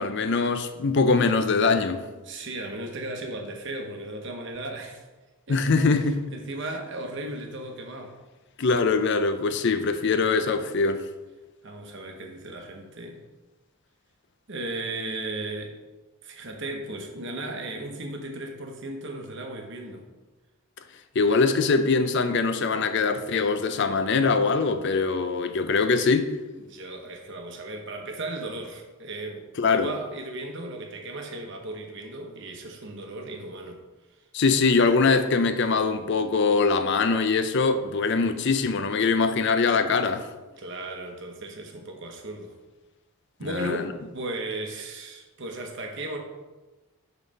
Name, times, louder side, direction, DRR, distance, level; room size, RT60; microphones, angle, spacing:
voice 1, 0.0-2.0 5.5-6.2 8.6-11.0 21.2-26.3 29.6-29.9 34.3-40.3 43.5-43.8, left 4 dB, 50° left, 0.4 m, -22 dB
voice 2, 2.0-5.0 5.5-8.2 11.6-13.2 14.5-15.8 16.2-20.1 26.5-33.8 40.6-42.5 43.4-46.2, right 2 dB, 55° right, 0.9 m, -36 dB
5.3 x 4.0 x 5.2 m
head